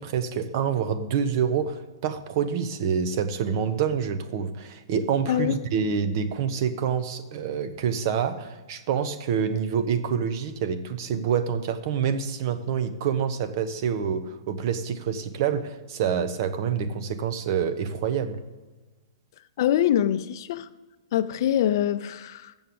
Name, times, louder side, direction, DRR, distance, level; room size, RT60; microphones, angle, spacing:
voice 1, 0.0-18.4, right 7 dB, 50° right, 0.9 m, -27 dB
voice 2, 19.6-20.7 21.1-22.5, left 11 dB, 55° left, 0.5 m, -24 dB
7.1 x 7.0 x 7.8 m
hypercardioid pair, 140°, 3 cm